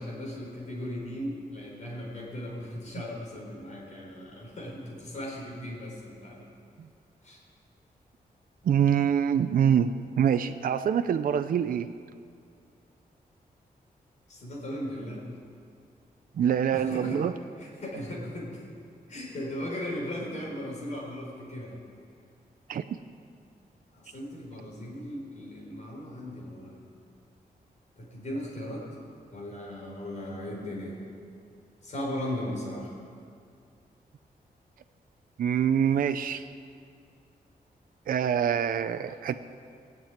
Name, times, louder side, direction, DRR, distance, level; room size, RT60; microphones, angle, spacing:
voice 1, 0.0-6.5 7.2-7.4 14.3-15.2 16.7-17.2 17.6-18.8 19.1-21.8 23.9-26.7 28.0-28.8 29.3-31.0 31.8-32.9 39.1-39.2, left 1 dB, 50° left, -3 dB, 4.7 m, -37 dB
voice 2, 8.6-9.9 10.2-11.9 16.4-17.3 22.7-22.8 35.4-36.4 38.1-39.3, right 8 dB, 65° right, 9 dB, 0.5 m, -25 dB
18.5 x 7.5 x 8.9 m, 2.4 s
wide cardioid pair, 170°, 16 cm